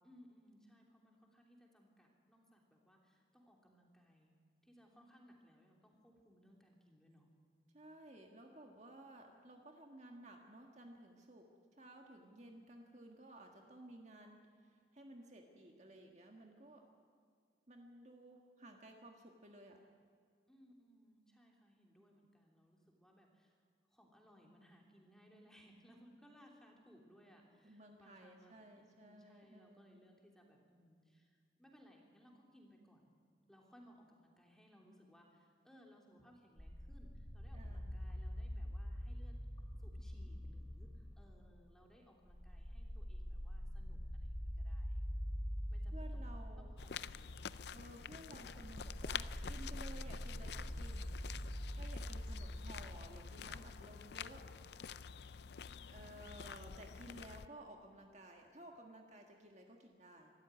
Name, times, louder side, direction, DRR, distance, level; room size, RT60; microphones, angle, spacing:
voice 1, 0.0-4.3 4.6-7.3 12.2-12.7 20.5-23.6 23.9-33.1 33.5-39.3 39.8-45.0 45.7-47.7 55.4-56.5, equal, 5° left, 0 dB, 3.1 m, -65 dB
voice 2, 7.7-11.5 11.8-16.9 17.7-19.9 27.6-30.1 37.5-37.9 45.9-46.7 47.7-51.1 51.7-54.5 55.9-60.3, right 1 dB, 40° right, 2 dB, 1.8 m, -56 dB
sound 1, 36.6-41.7 42.2-53.8, equal, 25° left, 2.3 m, -45 dB
sound 2, 46.8-57.5, left 7 dB, 65° left, 0.5 m, -48 dB
26.0 x 13.5 x 9.7 m, 2.1 s
head